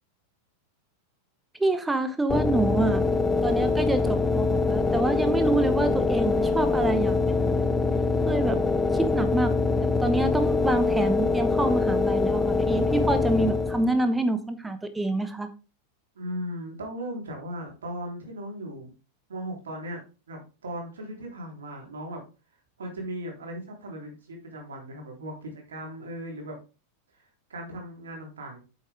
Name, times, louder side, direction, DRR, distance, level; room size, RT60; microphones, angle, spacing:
voice 1, 1.6-3.0 3.4-7.8 8.3-9.5 10.0-15.5, right 2 dB, 10° right, 10 dB, 1.0 m, -27 dB
sound 1, 2.3-14.0, left 3 dB, 15° left, 0.7 m, -24 dB
voice 2, 16.1-18.9 19.3-20.0 20.3-22.2 22.8-26.6 27.5-28.6, equal, 65° right, 1 dB, 3.4 m, -37 dB
8.8 x 7.0 x 3.5 m, 0.31 s
figure-of-eight pair, 90°, 0 cm